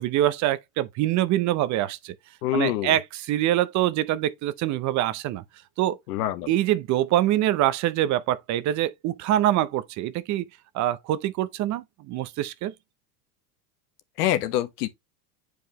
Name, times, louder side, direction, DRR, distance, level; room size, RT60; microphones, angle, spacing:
voice 1, 0.0-2.1 2.5-5.4 5.8-6.0 6.5-10.5 10.7-12.7, right 13 dB, 40° right, 0.7 m, -24 dB
voice 2, 2.4-3.0 6.1-6.5 14.2-14.9, left 13 dB, 80° left, 1.3 m, -25 dB
8.9 x 4.9 x 3.1 m
supercardioid pair, 130°, 46 cm